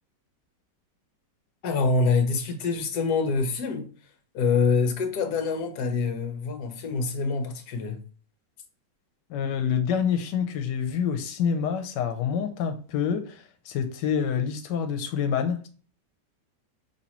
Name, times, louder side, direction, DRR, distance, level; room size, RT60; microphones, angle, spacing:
voice 1, 1.6-3.9 4.3-8.0, left 4 dB, 70° left, 1.3 m, -25 dB
voice 2, 9.3-15.7, left 7 dB, 90° left, 1.3 m, -27 dB
5.4 x 2.8 x 2.9 m
omnidirectional pair, 1.8 m